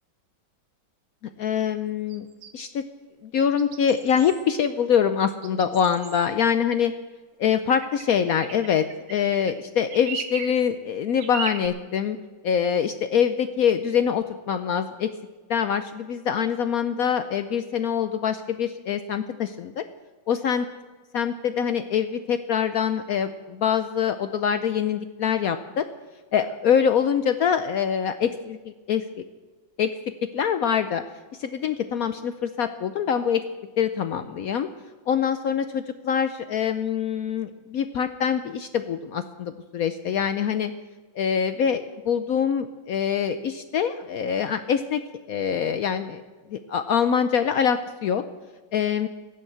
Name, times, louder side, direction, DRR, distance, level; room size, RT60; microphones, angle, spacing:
voice 1, 1.4-2.3 2.5-2.8 3.2-6.9 7.4-12.2 12.4-15.1 15.5-19.8 20.3-20.7 21.1-25.9 26.3-28.6 28.9-29.0 29.8-29.9 30.3-31.0 31.4-33.5 33.8-34.7 35.1-40.7 41.2-45.0 45.3-46.2 46.5-48.2 48.7-49.1, left 7 dB, 75° left, 10 dB, 0.8 m, -24 dB
sound 1, 2.1-2.5 3.6-4.4 5.4-6.3 7.7-8.1 8.4-9.6 9.9-10.6 11.2-11.7, right 7 dB, 90° right, 1.8 m, -36 dB
16.5 x 7.2 x 7.9 m, 1.4 s
omnidirectional pair, 2.1 m